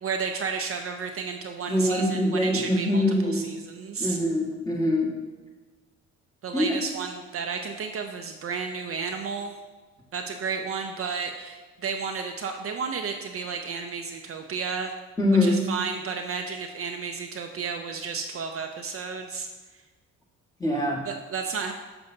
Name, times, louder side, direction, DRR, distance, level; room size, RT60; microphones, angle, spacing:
voice 1, 0.0-4.2 6.4-9.5 10.1-14.9 15.4-19.5 21.0-21.7, right 5 dB, 50° right, 4 dB, 0.5 m, -32 dB
voice 2, 1.7-3.4 4.0-5.1 6.5-6.7 15.2-15.6 20.6-21.0, left 1 dB, 10° left, -3 dB, 1.6 m, -23 dB
6.8 x 6.6 x 2.7 m, 1.3 s
cardioid pair, 90°, 30 cm